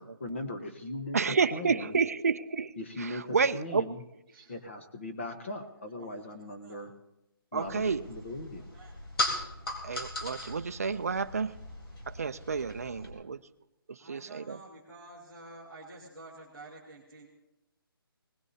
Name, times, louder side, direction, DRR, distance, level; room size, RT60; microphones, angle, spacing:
voice 1, 0.0-1.9 2.8-4.0 4.5-6.9 7.5-8.7, left 1 dB, 30° left, 7 dB, 1.0 m, -39 dB
voice 2, 1.1-2.7 3.0-3.9 7.5-8.0 9.8-11.6 12.1-13.4 13.9-14.6, right 5 dB, 40° right, 11 dB, 0.4 m, -30 dB
voice 3, 4.3-4.6 5.4-5.7 6.0-6.8 8.0-8.1 8.6-9.0 14.0-17.3, right 2 dB, 5° left, -10 dB, 1.7 m, -51 dB
sound 1, 7.6-13.1, left 1 dB, 75° left, 3.8 m, -38 dB
20.0 x 19.5 x 2.8 m, 0.89 s
hypercardioid pair, 180°, 13 cm